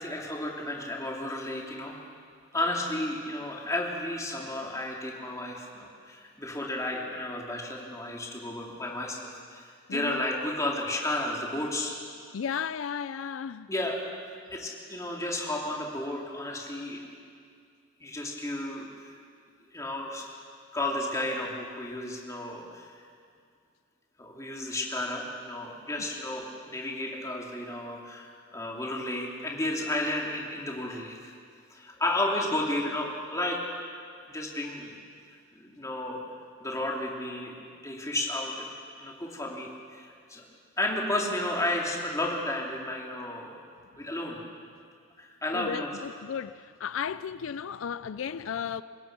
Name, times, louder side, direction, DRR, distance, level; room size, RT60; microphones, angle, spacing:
voice 1, 0.0-2.0 2.5-11.9 13.7-14.1 14.5-17.0 18.0-19.1 19.7-20.3 20.7-23.0 24.2-31.3 31.7-33.8 34.3-35.0 35.5-36.2 36.6-37.5 37.8-40.4 40.8-43.6 44.0-44.4 45.2-46.0, left 1 dB, 15° left, 2.8 m, -33 dB
voice 2, 9.9-10.2 12.3-13.7 45.5-48.8, left 7 dB, 80° left, 0.4 m, -34 dB
28.0 x 17.0 x 6.1 m
head